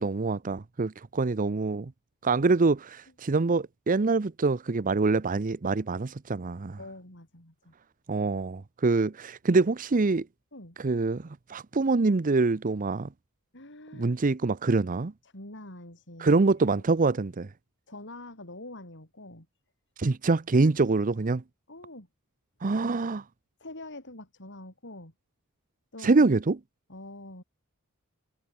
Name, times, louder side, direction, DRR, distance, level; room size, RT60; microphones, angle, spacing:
voice 1, 0.0-1.9 2.2-6.8 8.1-10.3 10.8-13.1 13.9-15.1 16.2-17.5 20.0-21.4 22.6-23.2 26.0-26.6, right 3 dB, 40° right, 0.6 m, -25 dB
voice 2, 6.8-7.7 10.5-10.8 13.5-14.2 15.2-16.4 17.9-19.5 21.7-22.1 22.6-22.7 23.6-25.1 25.9-26.2 26.9-27.4, left 2 dB, 55° left, 7.9 m, -45 dB
head